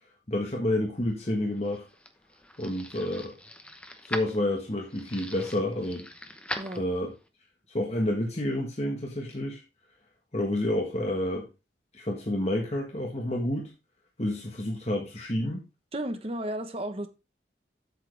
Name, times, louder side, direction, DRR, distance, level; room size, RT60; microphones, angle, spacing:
voice 1, 0.3-1.8 2.6-3.3 4.0-6.1 6.7-7.1 7.7-9.6 10.3-11.5 11.9-13.7 14.2-15.6, left 1 dB, 35° left, 1.6 m, -29 dB
sound 1, 1.3-7.3, left 1 dB, 5° left, 0.9 m, -41 dB
voice 2, 15.9-17.1, right 1 dB, 35° right, 1.2 m, -33 dB
8.2 x 7.6 x 3.4 m
head